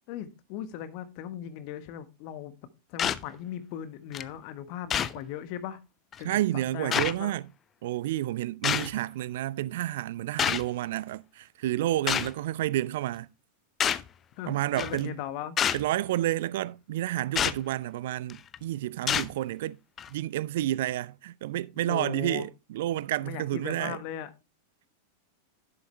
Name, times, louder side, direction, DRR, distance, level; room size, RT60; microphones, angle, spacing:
voice 1, 0.1-2.5 2.9-5.8 6.2-6.4 6.7-7.3 14.4-15.6 21.9-22.5 23.2-24.3, left 10 dB, 45° left, 1.4 m, -38 dB
sound 1, 3.0-3.2 4.1-4.2 4.9-5.2 6.1-6.2 6.9-7.1 8.6-8.9 10.4-10.7 12.1-12.3 13.8-14.1 14.8-15.0 15.6-15.9 17.4-17.6 18.3-18.6 19.1-19.3 20.0-20.1, left 8 dB, 25° left, 0.6 m, -27 dB
voice 2, 6.2-7.5 7.8-13.3 14.5-15.2 15.7-19.8 20.1-24.0, right 14 dB, 55° right, 0.4 m, -30 dB
11.0 x 7.9 x 3.3 m
figure-of-eight pair, 90°, 0 cm